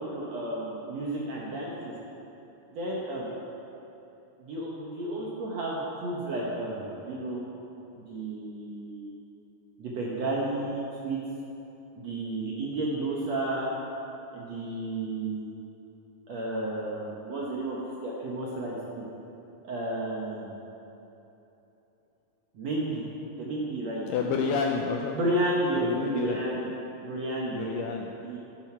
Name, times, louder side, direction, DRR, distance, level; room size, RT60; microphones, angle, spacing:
voice 1, 0.0-1.9 2.7-3.3 4.4-7.4 8.0-9.2 9.8-11.2 12.0-13.7 14.3-15.6 16.3-19.1 19.6-20.7 22.5-23.0 23.4-24.4 25.1-26.7 27.0-27.7 28.2-28.4, right 2 dB, 65° right, -4 dB, 1.8 m, -32 dB
voice 2, 24.1-25.2 25.8-26.4 27.5-28.1, left 5 dB, 80° left, 1 dB, 2.0 m, -29 dB
12.0 x 10.5 x 4.5 m, 3.0 s
omnidirectional pair, 4.4 m